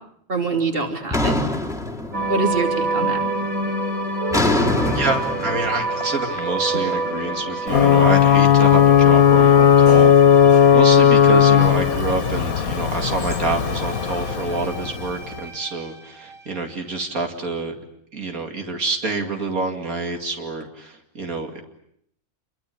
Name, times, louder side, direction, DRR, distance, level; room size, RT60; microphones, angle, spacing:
voice 1, 0.3-1.4 2.3-3.2, right 3 dB, 40° right, 4 dB, 3.1 m, -24 dB
sound 1, 1.1-2.7 3.0-3.4 4.3-7.4, left 1 dB, ahead, 2.1 m, -24 dB
sound 2, 2.1-16.6, right 2 dB, 70° right, 3.6 m, -29 dB
voice 2, 4.9-10.1 10.7-17.7 18.1-21.6, right 3 dB, 90° right, 4 dB, 2.9 m, -27 dB
Ocean / Boat Water vehicle / Alarm, 7.7-15.2, left 8 dB, 90° left, 1.7 m, -15 dB
27.0 x 23.5 x 8.6 m, 0.71 s
omnidirectional pair, 1.5 m